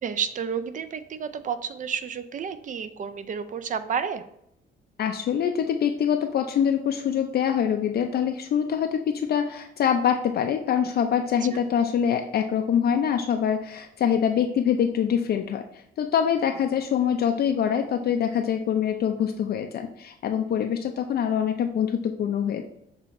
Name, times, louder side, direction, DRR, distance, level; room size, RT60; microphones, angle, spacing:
voice 1, 0.0-4.2 11.5-11.6, right 7 dB, 40° right, 13 dB, 0.4 m, -31 dB
voice 2, 5.0-15.6 16.0-22.6, left 8 dB, 55° left, 4 dB, 0.4 m, -24 dB
6.7 x 2.8 x 2.5 m, 0.77 s
cardioid pair, 90°, 20 cm